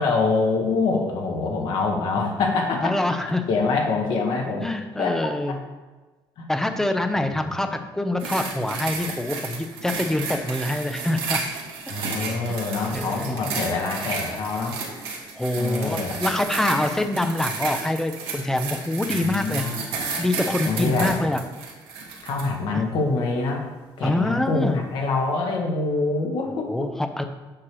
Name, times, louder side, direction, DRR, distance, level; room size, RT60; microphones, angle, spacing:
voice 1, 0.0-2.9 3.5-4.6 5.0-5.2 5.5-5.6 6.4-6.5 7.4-7.5 11.9-14.8 15.6-16.2 19.1-19.8 20.7-21.2 22.2-23.6 24.0-26.9, left 3 dB, 65° left, 1 dB, 1.6 m, -25 dB
voice 2, 2.8-3.4 4.6-5.6 6.5-11.4 12.9-13.5 15.3-19.6 20.2-21.4 22.7-22.8 24.0-24.8 26.5-27.2, left 1 dB, 5° left, 7 dB, 0.5 m, -25 dB
sound 1, 8.2-22.5 23.2-23.3, right 4 dB, 80° right, 1.5 m, -32 dB
8.6 x 3.3 x 6.1 m, 1.2 s
cardioid pair, 175°, 9 cm